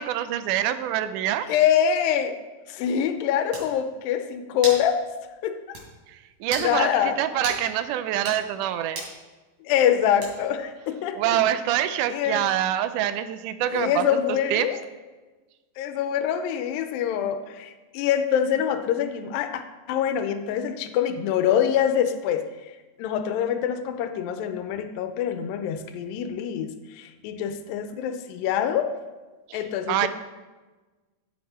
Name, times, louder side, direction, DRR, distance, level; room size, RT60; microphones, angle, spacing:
voice 1, 0.0-1.5 6.1-9.0 11.1-14.1 14.5-14.7 29.5-29.6 29.9-30.1, right 12 dB, 80° right, 11 dB, 1.9 m, -25 dB
voice 2, 1.5-2.4 2.7-5.0 5.4-5.8 6.6-7.2 9.6-11.4 12.1-12.4 13.7-14.8 15.8-19.6 19.9-22.4 23.0-28.9 29.5-30.1, left 9 dB, 85° left, 8 dB, 2.4 m, -25 dB
sound 1, 3.1-3.2 3.5-3.7 4.6-4.9 5.2-5.3 5.7-5.9 6.4-6.7 7.4-7.6 8.1-8.4 8.9-9.2 10.2-10.6, right 2 dB, 55° right, 4.1 m, -34 dB
14.5 x 6.0 x 4.2 m, 1.2 s
omnidirectional pair, 4.1 m